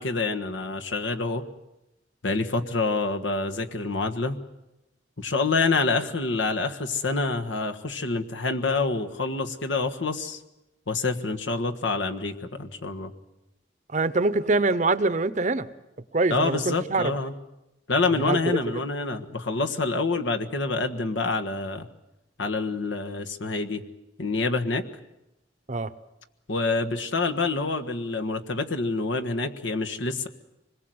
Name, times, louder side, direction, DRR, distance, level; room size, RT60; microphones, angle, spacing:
voice 1, 0.0-1.4 2.2-4.4 5.2-10.4 10.9-13.1 16.3-17.3 17.9-21.9 22.4-23.8 24.2-24.8 26.5-30.3, left 3 dB, 80° left, 6 dB, 1.5 m, -27 dB
voice 2, 13.9-15.7 16.1-17.1 18.3-18.6 25.7-25.9, right 3 dB, 40° right, 14 dB, 0.8 m, -24 dB
25.5 x 21.0 x 7.9 m, 0.93 s
head